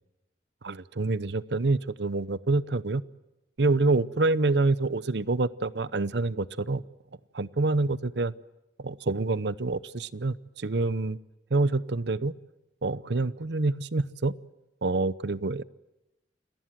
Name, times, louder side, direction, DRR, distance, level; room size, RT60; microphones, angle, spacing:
voice 1, 0.6-3.0 3.6-6.8 7.3-8.3 8.8-11.2 11.5-12.3 12.8-14.3 14.8-15.6, right 3 dB, 70° right, 18 dB, 0.8 m, -27 dB
28.5 x 19.0 x 7.6 m, 0.96 s
head